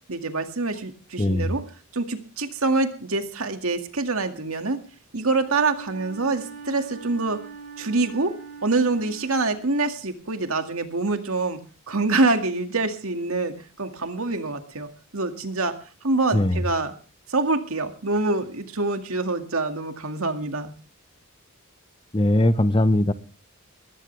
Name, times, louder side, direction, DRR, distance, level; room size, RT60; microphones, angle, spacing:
voice 1, 0.1-1.7 1.9-4.8 5.1-7.4 7.8-8.4 8.6-11.6 11.9-15.8 16.0-16.9 17.3-20.7, right 3 dB, 75° right, 6 dB, 2.2 m, -25 dB
voice 2, 1.2-1.5 16.3-16.6 22.1-23.1, left 1 dB, 25° left, 13 dB, 0.8 m, -20 dB
Wind instrument woodwind instrument, 5.3-10.1, right 4 dB, 40° right, 4.3 m, -42 dB
20.5 x 15.5 x 3.4 m, 0.38 s
head